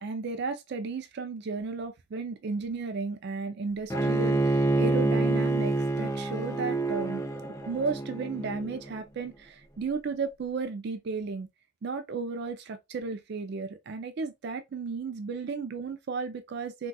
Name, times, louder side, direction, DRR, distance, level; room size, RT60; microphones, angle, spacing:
voice 1, 0.0-7.2 7.7-11.5 11.8-16.9, right 4 dB, 55° right, 0.4 m, -34 dB
Bowed string instrument, 3.9-9.0, right 2 dB, 15° left, 0.5 m, -27 dB
4.0 x 2.3 x 2.2 m
head